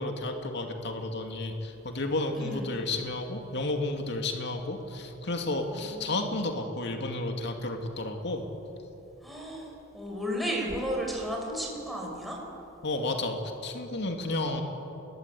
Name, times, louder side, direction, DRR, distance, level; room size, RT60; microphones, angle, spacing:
voice 1, 0.0-8.4 12.8-14.6, left 2 dB, 60° left, 3 dB, 2.5 m, -32 dB
voice 2, 2.4-2.8 5.8-6.1 9.2-12.4, equal, ahead, -1 dB, 5.3 m, -34 dB
30.0 x 21.5 x 8.5 m, 3.0 s
head